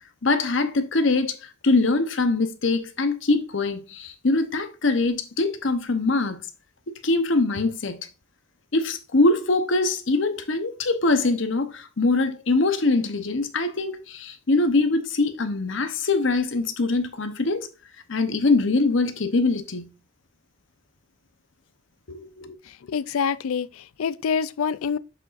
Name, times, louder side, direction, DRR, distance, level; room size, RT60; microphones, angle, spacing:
voice 1, 0.2-6.4 7.0-8.0 8.7-17.7 18.1-19.9 22.1-22.6, left 3 dB, 60° left, 0.9 m, -23 dB
voice 2, 22.9-25.0, left 6 dB, 85° left, 0.4 m, -26 dB
7.2 x 6.9 x 2.5 m
head